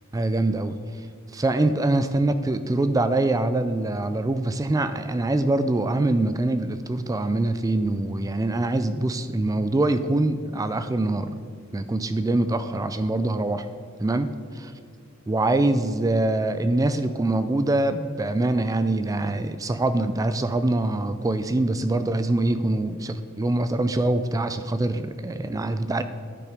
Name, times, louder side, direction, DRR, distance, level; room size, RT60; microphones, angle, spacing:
voice 1, 0.1-1.1 1.3-11.4 11.7-13.7 14.0-14.3 15.3-26.0, right 2 dB, 15° right, 11 dB, 0.3 m, -24 dB
10.0 x 6.8 x 5.0 m, 2.2 s
head